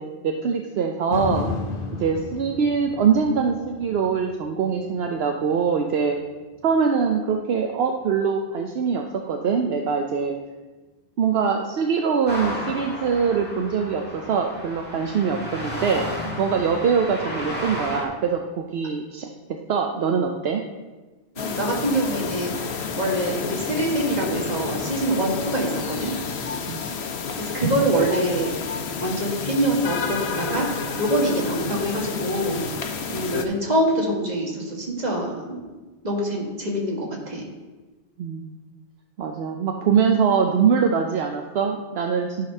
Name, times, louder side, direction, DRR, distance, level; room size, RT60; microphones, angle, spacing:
voice 1, 0.0-1.5 2.0-6.2 6.6-10.3 11.2-16.1 16.4-19.3 19.7-20.6 26.7-26.8 38.2-38.5 39.2-42.5, right 6 dB, 75° right, 3 dB, 0.9 m, -23 dB
sound 1, 1.1-9.3 9.7-9.8, left 4 dB, 60° left, 1.1 m, -35 dB
sound 2, 12.3-18.0, left 1 dB, 10° left, 2.1 m, -33 dB
sound 3, 21.4-33.5, left 5 dB, 90° left, 1.0 m, -30 dB
voice 2, 21.4-26.1 27.4-28.5 29.0-32.6 33.1-35.6 36.0-37.5, right 1 dB, 40° right, -2 dB, 1.9 m, -25 dB
12.5 x 4.1 x 5.4 m, 1.2 s
omnidirectional pair, 1.1 m